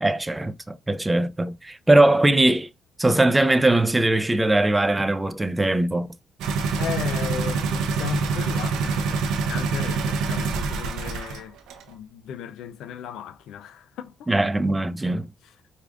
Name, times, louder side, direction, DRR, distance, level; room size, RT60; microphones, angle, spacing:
voice 1, 0.0-2.7 3.0-6.1 14.3-15.3, right 2 dB, 15° right, 0.4 m, -20 dB
sound 1, 6.4-11.4 11.7-11.8, right 4 dB, 80° right, 0.5 m, -26 dB
voice 2, 6.8-11.6 11.9-14.3 15.4-15.6, left 9 dB, 75° left, 0.4 m, -35 dB
4.8 x 2.4 x 2.4 m
supercardioid pair, 60°, 0 cm